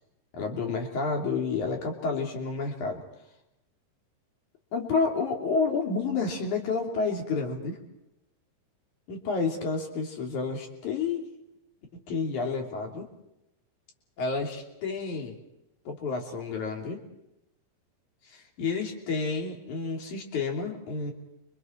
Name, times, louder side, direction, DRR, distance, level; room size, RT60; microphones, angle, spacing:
voice 1, 0.3-3.0 4.7-7.8 9.1-11.3 11.9-13.1 14.2-15.4 15.9-17.0 18.2-21.1, left 4 dB, 45° left, 2 dB, 4.1 m, -30 dB
29.0 x 25.0 x 4.5 m, 0.86 s
omnidirectional pair, 5.1 m